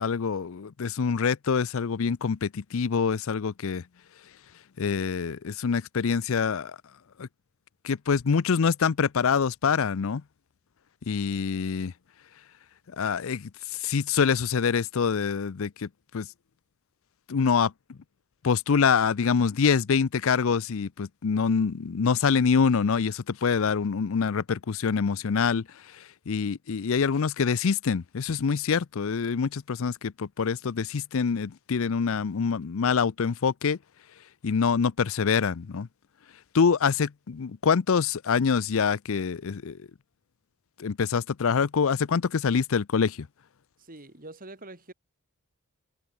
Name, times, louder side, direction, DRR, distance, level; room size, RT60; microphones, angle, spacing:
voice 1, 0.0-3.8 4.8-6.8 7.2-7.3 7.8-10.2 11.1-11.9 13.0-13.5 13.8-16.3 17.3-18.0 18.4-25.7 25.9-33.8 34.4-35.9 36.5-39.9 40.8-43.3, left 6 dB, 65° left, 0.5 m, -25 dB
voice 2, 43.8-44.9, right 2 dB, 40° right, 3.7 m, -44 dB
head